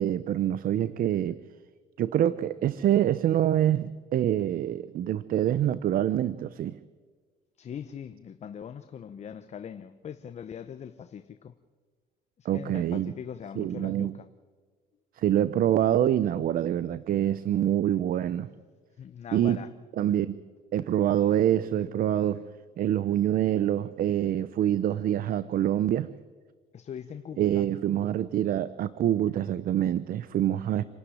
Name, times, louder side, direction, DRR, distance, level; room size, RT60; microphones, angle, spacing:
voice 1, 0.0-1.4 2.0-6.8 12.4-13.1 13.6-14.1 15.2-18.5 19.3-19.6 20.0-20.4 20.7-22.4 22.8-26.1 27.4-30.9, right 11 dB, 60° right, 0.7 m, -26 dB
voice 2, 7.6-11.5 12.4-14.3 19.0-19.7 26.7-27.6, left 8 dB, 40° left, 0.9 m, -41 dB
27.5 x 12.5 x 10.0 m
cardioid pair, 110°, 17 cm